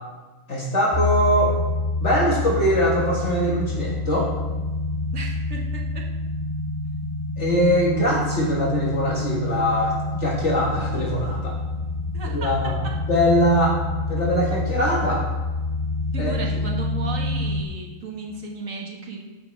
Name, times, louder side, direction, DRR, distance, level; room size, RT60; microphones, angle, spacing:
voice 1, 0.5-1.6 2.0-4.3 7.4-11.5 12.3-12.8 13.1-13.8 14.1-15.2 16.2-16.4, equal, 55° left, -4 dB, 2.0 m, -22 dB
sound 1, 0.9-17.6, left 2 dB, 25° left, 0.9 m, -27 dB
voice 2, 5.1-6.1 12.1-13.0 16.1-19.2, right 4 dB, 75° right, 0 dB, 1.9 m, -35 dB
13.0 x 9.0 x 3.3 m, 1.2 s
omnidirectional pair, 1.4 m